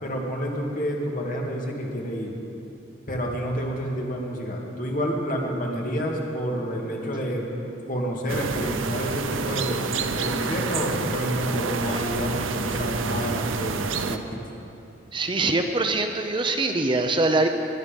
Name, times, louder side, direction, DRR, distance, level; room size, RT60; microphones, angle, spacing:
voice 1, 0.0-2.4 3.1-7.5 7.9-9.8 10.2-14.4, equal, 45° left, -1 dB, 2.2 m, -29 dB
sound 1, 8.3-14.2, right 4 dB, 85° right, 0.7 m, -28 dB
voice 2, 15.1-17.5, right 2 dB, 25° right, 5 dB, 0.6 m, -23 dB
19.5 x 11.5 x 5.3 m, 2.8 s
head